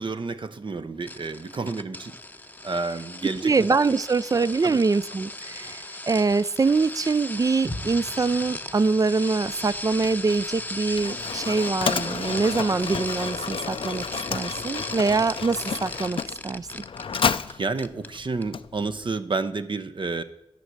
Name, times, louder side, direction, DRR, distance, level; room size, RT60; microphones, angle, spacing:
voice 1, 0.0-2.2 2.6-3.7 4.6-4.8 17.4-20.2, right 3 dB, 60° right, 10 dB, 0.8 m, -30 dB
sound 1, 1.1-17.5 17.8-18.1 18.4-18.5, left 2 dB, 20° left, 0.7 m, -37 dB
voice 2, 3.2-14.0 14.3-16.2 16.4-16.8, right 4 dB, 40° right, 17 dB, 0.4 m, -24 dB
sound 2, 7.6-12.0, equal, 90° right, 2.9 m, -42 dB
Mechanisms, 9.4-19.1, left 6 dB, 70° left, 0.4 m, -32 dB
12.0 x 6.3 x 8.1 m, 0.83 s
cardioid pair, 55°, 9 cm